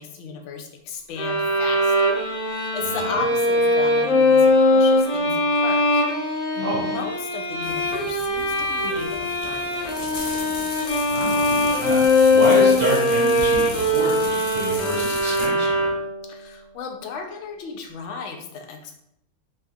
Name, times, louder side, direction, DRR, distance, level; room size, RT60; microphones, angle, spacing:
voice 1, 0.0-2.2 2.5-10.1 16.3-18.9, left 5 dB, 65° left, 3 dB, 0.8 m, -35 dB
sound 1, 1.2-16.3, left 2 dB, 35° left, 0.8 m, -21 dB
sound 2, 7.6-15.5, left 3 dB, 90° left, 1.1 m, -36 dB
voice 2, 11.1-15.9, right 1 dB, 60° right, -7 dB, 1.6 m, -28 dB
3.3 x 2.7 x 2.3 m, 0.74 s
omnidirectional pair, 1.5 m